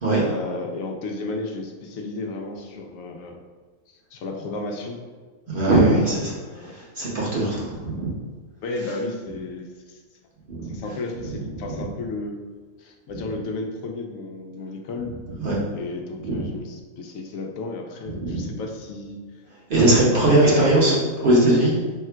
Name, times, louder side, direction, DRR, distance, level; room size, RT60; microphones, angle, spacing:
voice 1, 0.2-3.4 4.1-5.0 5.5-6.8 8.6-10.0 10.7-12.3 12.8-15.1 15.7-19.2 20.1-21.0, left 3 dB, 75° left, 2 dB, 1.0 m, -33 dB
voice 2, 5.5-6.3 6.7-8.1 10.5-10.8 11.7-11.8 13.1-13.2 15.4-15.6 16.2-16.5 18.1-18.5 19.7-20.9 21.2-21.7, right 2 dB, 45° right, -6 dB, 1.0 m, -20 dB
3.5 x 2.3 x 4.4 m, 1.4 s
omnidirectional pair, 1.4 m